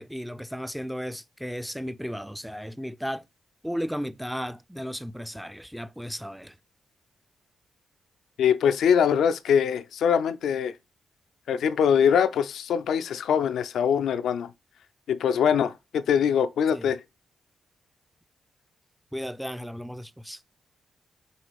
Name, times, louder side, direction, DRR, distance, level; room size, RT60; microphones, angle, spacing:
voice 1, 0.0-3.2 3.6-6.6 16.7-16.9 19.1-20.4, equal, ahead, 0.4 m, -34 dB
voice 2, 8.4-10.7 11.5-14.5 15.1-17.0, left 7 dB, 80° left, 0.4 m, -23 dB
6.1 x 2.3 x 3.5 m
supercardioid pair, 55°, 0 cm